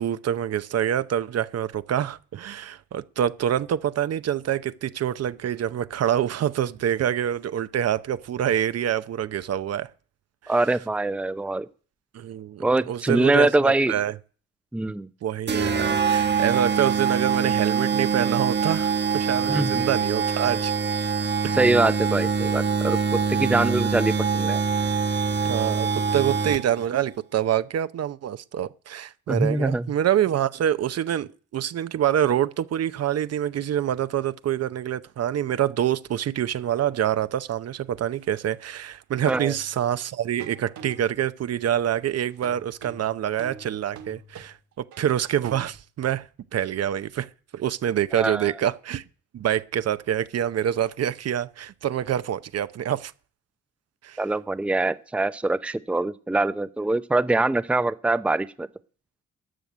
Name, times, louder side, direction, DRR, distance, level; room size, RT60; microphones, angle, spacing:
voice 1, 0.0-9.9 12.1-14.1 15.2-20.7 21.4-21.6 25.4-25.9 26.1-47.3 47.5-49.0 49.3-53.1 54.0-54.2, right 10 dB, 55° right, 0.8 m, -26 dB
voice 2, 10.5-11.7 12.6-13.9 14.7-15.1 19.5-19.8 21.6-24.6 29.3-29.9 39.3-39.5 48.1-48.5 54.2-58.7, right 2 dB, 5° right, 0.6 m, -23 dB
sound 1, 15.5-26.9, right 6 dB, 35° right, 1.3 m, -24 dB
sound 2, 37.5-37.6 39.3-40.0 40.4-41.3 42.4-45.8, right 5 dB, 75° right, 1.7 m, -45 dB
12.5 x 6.6 x 9.2 m
cardioid pair, 90°, 30 cm